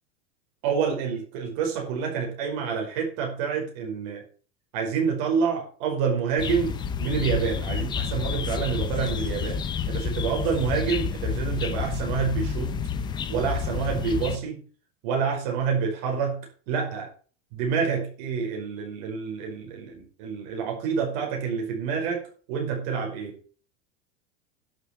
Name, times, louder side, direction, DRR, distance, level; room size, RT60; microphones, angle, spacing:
voice 1, 0.6-4.2 4.7-12.8 13.3-14.6 15.0-17.1 17.5-23.4, right 6 dB, 55° right, 2 dB, 5.1 m, -28 dB
sound 1, 6.4-14.4, left 6 dB, 15° left, 0.5 m, -29 dB
11.5 x 6.6 x 7.2 m, 0.40 s
supercardioid pair, 175°, 34 cm